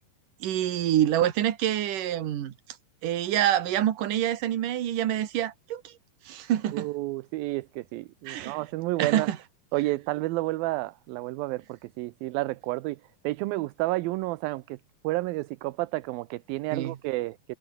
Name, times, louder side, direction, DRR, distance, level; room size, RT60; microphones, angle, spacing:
voice 1, 0.4-2.5 3.0-5.9 6.3-6.9 8.3-8.6 9.0-9.4 16.7-17.0, right 11 dB, 65° right, 3.1 m, -26 dB
voice 2, 6.7-9.3 9.7-13.0 13.2-14.8 15.0-17.6, right 20 dB, 80° right, 2.5 m, -30 dB
omnidirectional pair, 4.3 m